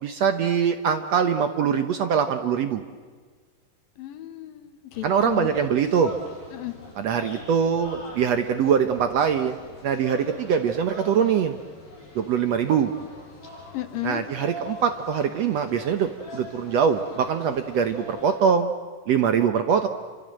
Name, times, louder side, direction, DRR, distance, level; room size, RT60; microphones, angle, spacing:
voice 1, 0.0-2.8 5.0-6.2 7.0-9.6 9.8-11.6 12.2-12.9 14.0-18.7 19.1-19.9, right 7 dB, 65° right, 8 dB, 1.7 m, -23 dB
voice 2, 4.0-5.5 6.5-6.8 13.7-14.2, left 15 dB, 85° left, 9 dB, 3.0 m, -33 dB
sound 1, 4.9-18.4, left 1 dB, 40° left, 8.6 m, -43 dB
29.0 x 26.0 x 7.7 m, 1.5 s
omnidirectional pair, 4.0 m